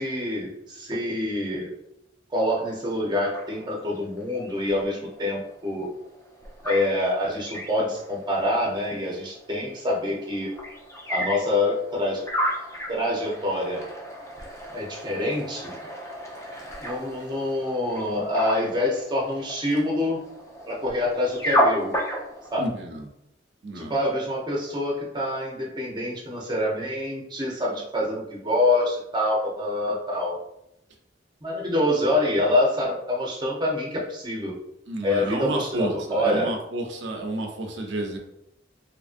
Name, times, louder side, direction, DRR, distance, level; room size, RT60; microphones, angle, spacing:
voice 1, 0.0-1.7 2.3-5.9 6.6-10.5 11.1-12.3 12.9-13.8 14.7-15.8 16.8-20.2 20.7-21.9 22.5-22.7 23.7-30.4 31.4-34.6 35.0-36.5, left 1 dB, 25° right, -3 dB, 0.7 m, -26 dB
sound 1, 2.8-22.7, equal, 15° left, 0.5 m, -33 dB
voice 2, 22.6-23.1 23.6-23.9 34.9-38.2, right 1 dB, 90° right, 2 dB, 0.6 m, -31 dB
2.9 x 2.5 x 2.5 m, 0.81 s
head